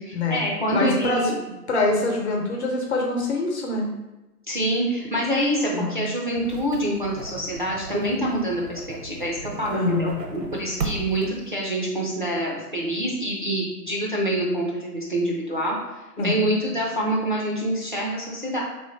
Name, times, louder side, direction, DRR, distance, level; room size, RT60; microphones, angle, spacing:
voice 1, 0.0-1.3 4.5-15.8 16.2-18.6, right 1 dB, 35° right, -4 dB, 0.4 m, -26 dB
voice 2, 0.7-1.2 1.7-3.9 5.7-6.0 9.7-10.2 16.2-16.5, left 3 dB, 45° left, 1 dB, 0.9 m, -24 dB
sound 1, 6.4-11.6, right 4 dB, 80° right, 0.9 m, -36 dB
3.1 x 3.0 x 4.2 m, 1.1 s
figure-of-eight pair, 135°, 48 cm